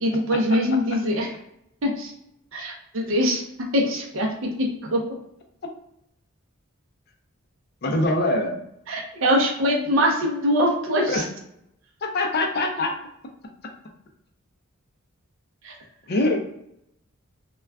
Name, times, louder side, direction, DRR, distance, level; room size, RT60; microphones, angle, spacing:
voice 1, 0.0-1.3 1.8-2.1 2.5-5.0 8.9-11.2 15.6-15.8, equal, 65° right, 0 dB, 0.5 m, -23 dB
voice 2, 7.8-8.6 11.1-11.3 12.0-12.9 16.1-16.4, left 2 dB, 45° left, 3 dB, 0.4 m, -23 dB
2.2 x 2.2 x 3.4 m, 0.77 s
head